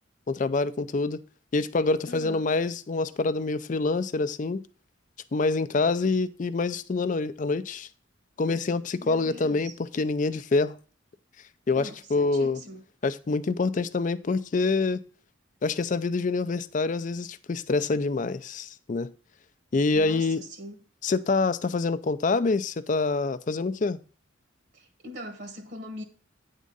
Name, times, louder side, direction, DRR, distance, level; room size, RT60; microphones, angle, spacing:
voice 1, 0.3-1.2 1.5-4.6 5.3-7.9 8.4-10.8 11.7-12.6 13.0-15.0 15.6-19.1 19.7-20.4 21.0-24.0, left 3 dB, 40° left, 0.4 m, -26 dB
voice 2, 2.1-2.4 9.0-9.7 11.7-12.8 19.9-20.8 24.7-26.0, left 1 dB, 55° right, 1.1 m, -41 dB
9.3 x 3.7 x 5.3 m
head